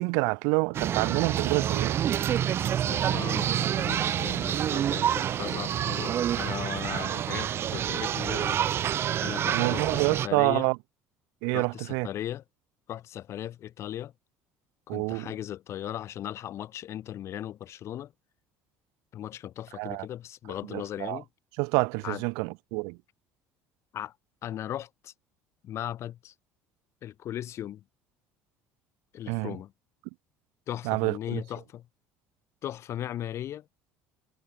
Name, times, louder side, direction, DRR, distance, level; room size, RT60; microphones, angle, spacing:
voice 1, 0.0-2.0 9.5-10.7 11.4-12.1 14.9-15.3 19.8-20.0 20.7-21.2 21.6-23.0 29.3-29.5 30.8-31.4, right 35 dB, 85° right, 1.2 m, -27 dB
sound 1, 0.7-10.3, right 10 dB, 45° right, 0.8 m, -28 dB
voice 2, 2.8-8.7 9.2-10.7 11.5-12.4 12.9-14.1 14.9-18.1 19.1-21.3 22.0-22.2 23.9-24.1 24.4-25.1 25.6-26.3 27.0-27.8 29.1-29.7 30.7-31.9 32.6-33.7, left 11 dB, 55° left, 7.7 m, -37 dB
supercardioid pair, 105°, 6 cm